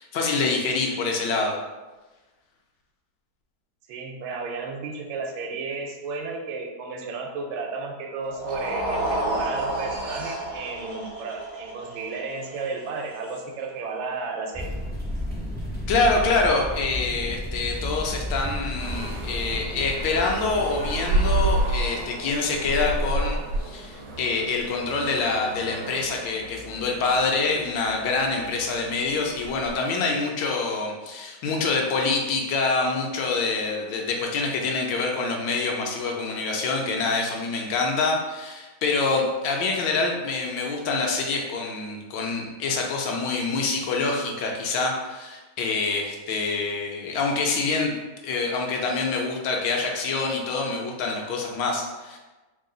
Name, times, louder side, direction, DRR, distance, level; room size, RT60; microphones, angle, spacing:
voice 1, 0.0-1.6 15.9-47.9 48.2-52.2, left 3 dB, 75° left, 1 dB, 1.3 m, -26 dB
voice 2, 3.9-14.7, right 4 dB, 85° right, 2 dB, 1.4 m, -33 dB
sound 1, 8.3-14.5, right 1 dB, 50° right, 0.5 m, -31 dB
sound 2, 14.5-21.0, left 1 dB, 10° left, 0.5 m, -32 dB
sound 3, 18.8-29.8, right 1 dB, 70° right, 1.0 m, -30 dB
3.5 x 2.3 x 3.8 m, 1.2 s
omnidirectional pair, 2.1 m